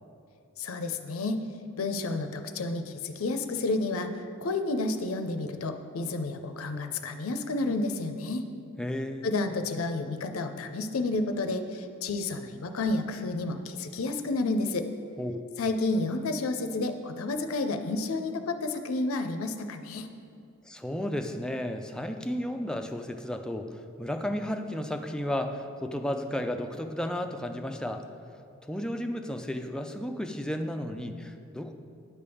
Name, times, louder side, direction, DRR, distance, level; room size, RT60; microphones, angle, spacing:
voice 1, 0.6-1.4 1.8-8.4 9.2-14.9 15.6-20.1, left 2 dB, 80° left, 7 dB, 0.5 m, -30 dB
voice 2, 8.8-9.3 15.2-15.4 20.7-28.0 28.6-31.7, left 1 dB, 5° left, 5 dB, 0.3 m, -33 dB
9.8 x 3.4 x 6.9 m, 2.5 s
head